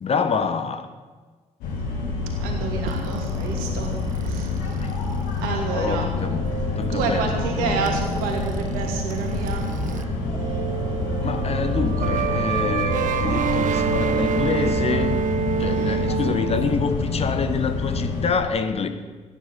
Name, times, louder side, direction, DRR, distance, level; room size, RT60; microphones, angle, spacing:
voice 1, 0.0-0.9 4.8-5.0 5.7-6.4 6.8-8.0 11.2-15.1 15.6-18.9, left 5 dB, 40° left, 9 dB, 1.3 m, -27 dB
sound 1, 1.6-18.3, left 3 dB, 65° left, 3.3 m, -27 dB
voice 2, 2.3-3.9 4.2-4.5 5.4-6.1 6.9-9.7 15.6-16.0, right 5 dB, 65° right, 2 dB, 2.7 m, -29 dB
sound 2, 2.9-10.0 10.3-16.7, right 8 dB, 50° right, 0.8 m, -29 dB
15.0 x 10.5 x 7.9 m, 1.4 s
figure-of-eight pair, 45°, 16 cm